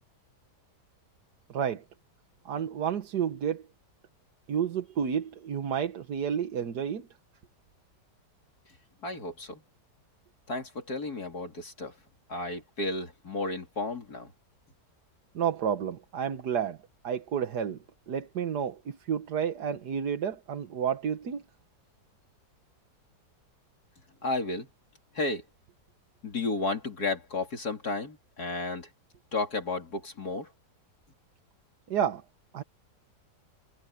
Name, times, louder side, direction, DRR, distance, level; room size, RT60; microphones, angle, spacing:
voice 1, 1.5-1.8 2.4-3.6 4.5-7.1 15.3-16.8 17.0-17.8 18.1-21.4 31.9-32.2 32.5-32.6, right 8 dB, 70° right, 1.8 m, -30 dB
voice 2, 9.0-9.6 10.5-11.9 12.3-14.3 24.2-24.7 25.2-25.4 26.2-28.9 29.3-30.5, left 3 dB, 65° left, 3.7 m, -32 dB
omnidirectional pair, 1.8 m